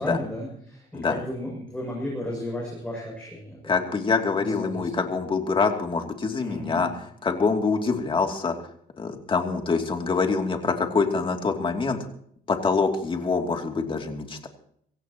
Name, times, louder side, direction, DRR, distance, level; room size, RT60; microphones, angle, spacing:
voice 1, 0.0-3.7 4.4-4.9 6.4-6.9, left 1 dB, 5° left, -3 dB, 7.1 m, -34 dB
voice 2, 3.7-6.9 7.2-8.5 9.0-12.0 12.5-14.5, left 4 dB, 30° left, 4 dB, 2.7 m, -25 dB
24.0 x 16.5 x 3.0 m, 0.65 s
cardioid pair, 110°, 17 cm